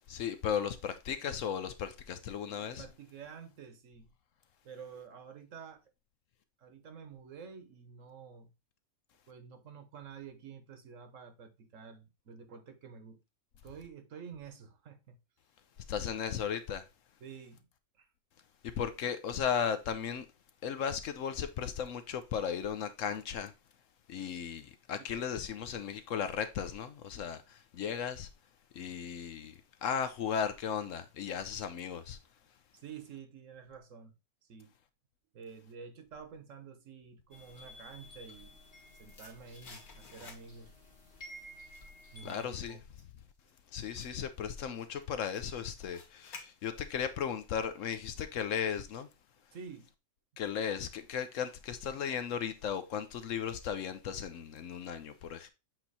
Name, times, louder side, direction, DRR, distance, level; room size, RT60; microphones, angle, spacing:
voice 1, 0.1-2.8 15.9-16.9 18.6-20.3 20.6-23.5 24.1-28.3 28.7-29.5 29.8-32.2 42.2-42.8 43.7-49.1 50.4-55.5, left 7 dB, 70° left, 1.0 m, -36 dB
voice 2, 2.6-4.1 4.6-5.8 6.6-8.5 9.3-13.2 13.6-15.2 17.2-17.7 17.9-18.1 24.9-25.3 32.7-34.1 34.4-34.7 35.3-38.6 38.9-40.7 42.1-42.8 49.5-49.9, right 6 dB, 60° right, 1.3 m, -49 dB
sound 1, 37.3-42.5, left 1 dB, 40° left, 1.7 m, -53 dB
sound 2, 38.6-40.8 41.1-47.0 47.3-47.4, left 4 dB, 85° left, 1.9 m, -55 dB
7.8 x 3.0 x 4.1 m
omnidirectional pair, 1.5 m